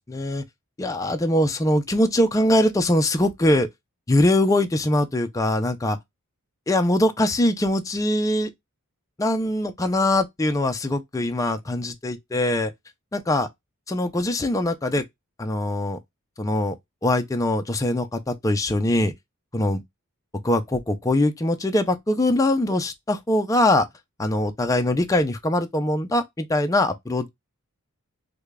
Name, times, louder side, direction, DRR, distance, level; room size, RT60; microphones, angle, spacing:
voice 1, 0.1-0.4 0.8-3.7 4.1-6.0 6.7-8.5 9.2-12.7 13.1-13.5 13.9-15.0 15.4-16.0 16.4-16.8 17.0-19.1 19.5-19.8 20.4-23.9 24.2-27.3, left 1 dB, 15° left, 0.4 m, -22 dB
4.8 x 2.2 x 2.3 m
head